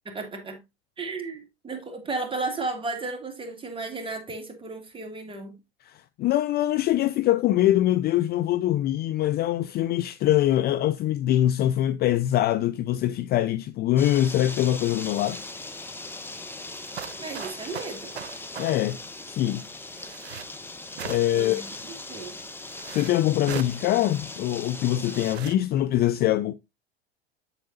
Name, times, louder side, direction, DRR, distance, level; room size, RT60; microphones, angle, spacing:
voice 1, 0.0-0.6 1.0-5.6 17.2-18.1 21.3-21.7 22.1-22.4, right 3 dB, 15° right, 2.5 m, -34 dB
voice 2, 5.8-15.4 18.6-19.0 19.2-19.6 21.0-21.6 22.9-26.5, left 13 dB, 30° left, 0.4 m, -23 dB
sound 1, 14.0-25.4, left 2 dB, 5° left, 1.0 m, -39 dB
sound 2, 16.7-18.8 20.0-20.5 21.0-21.5 22.6-23.1 23.5-23.8 25.1-25.6, right 8 dB, 90° right, 0.6 m, -38 dB
8.1 x 7.7 x 2.6 m
hypercardioid pair, 90°, 31 cm